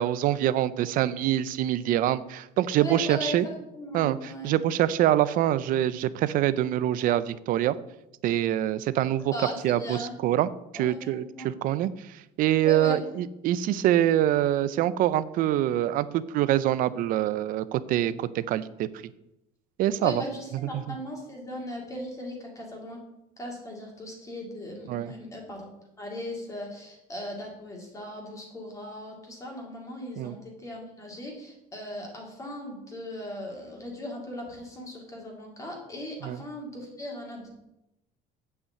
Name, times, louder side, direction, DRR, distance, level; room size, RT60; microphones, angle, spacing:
voice 1, 0.0-3.5 3.9-7.8 8.2-9.3 9.6-18.9 19.8-20.2 24.9-25.1 30.2-30.4 36.2-36.4, right 12 dB, 55° right, 16 dB, 0.5 m, -25 dB
voice 2, 2.8-3.4 3.7-4.6 9.3-10.1 10.7-11.5 12.6-13.0 20.0-23.0 23.4-25.7 26.0-37.5, left 1 dB, 20° left, -1 dB, 2.4 m, -38 dB
8.2 x 5.8 x 7.8 m, 0.87 s
cardioid pair, 160°, 17 cm